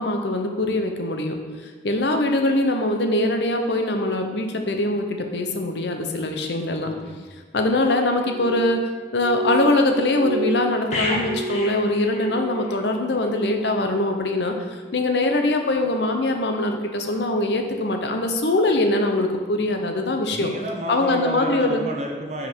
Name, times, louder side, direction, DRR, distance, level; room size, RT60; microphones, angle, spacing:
voice 1, 0.0-1.4 1.6-6.9 7.5-20.5 20.9-21.8, left 2 dB, 80° left, 4 dB, 0.7 m, -22 dB
voice 2, 6.8-7.2 20.3-22.5, right 1 dB, 40° right, 1 dB, 0.8 m, -31 dB
Glass, 8.2-12.8 13.1-13.8 14.1-14.7 15.3-15.6, right 1 dB, 75° right, 1.5 m, -32 dB
sound 1, 10.9-12.8 13.1-13.3, left 2 dB, 40° left, 1.3 m, -30 dB
5.2 x 5.0 x 4.6 m, 1.5 s
head